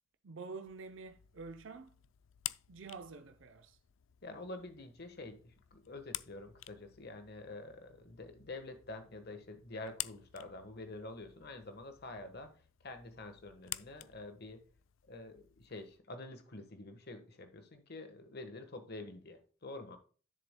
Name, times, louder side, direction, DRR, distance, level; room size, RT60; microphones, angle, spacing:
voice 1, 0.2-2.0 2.7-3.8, right 4 dB, 65° right, 0.6 m, -48 dB
sound 1, 0.6-16.0, left 16 dB, 70° left, 0.4 m, -50 dB
voice 2, 4.2-12.5 12.8-14.6 15.1-20.0, left 2 dB, 55° left, 1.3 m, -47 dB
11.0 x 6.8 x 2.2 m
head